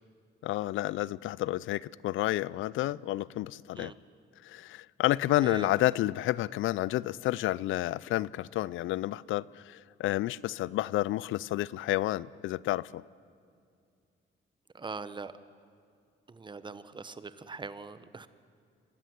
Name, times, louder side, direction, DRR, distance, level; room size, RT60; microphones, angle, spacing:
voice 1, 0.4-3.9 4.4-13.0, left 15 dB, 80° left, 0.5 m, -30 dB
voice 2, 14.7-15.3 16.3-18.3, right 4 dB, 25° right, 1.0 m, -41 dB
24.5 x 12.5 x 9.4 m
cardioid pair, 90°, 20 cm